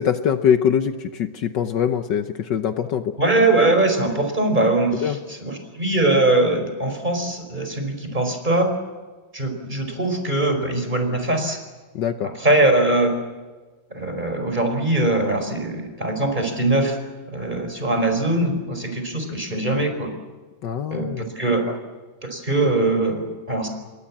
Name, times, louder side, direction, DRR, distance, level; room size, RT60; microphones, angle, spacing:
voice 1, 0.0-3.1 5.0-5.2 11.9-12.3 20.6-21.3, left 8 dB, 65° left, 9 dB, 1.5 m, -23 dB
voice 2, 3.2-8.7 9.3-11.6 12.4-13.2 13.9-17.0 17.3-20.1 20.9-21.7 22.2-23.7, right 2 dB, 20° right, 5 dB, 4.9 m, -21 dB
28.5 x 22.5 x 7.4 m, 1.3 s
omnidirectional pair, 2.2 m